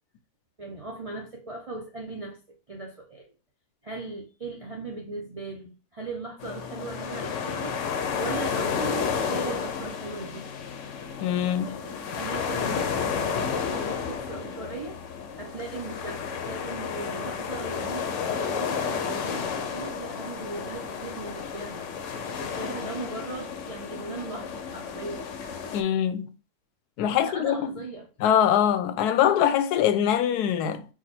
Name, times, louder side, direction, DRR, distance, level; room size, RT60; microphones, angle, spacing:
voice 1, 0.6-2.4 2.7-3.3 3.8-7.8 8.2-10.5 11.7-13.1 13.5-15.0 15.4-21.9 22.4-25.2 27.1-28.1, right 3 dB, 55° right, 0.3 m, -38 dB
sound 1, 6.4-25.8, left 6 dB, 65° left, 0.9 m, -32 dB
voice 2, 11.2-11.8 25.7-26.3 27.0-27.7 28.2-30.9, left 9 dB, 85° left, 1.1 m, -23 dB
4.8 x 2.3 x 4.2 m
omnidirectional pair, 1.6 m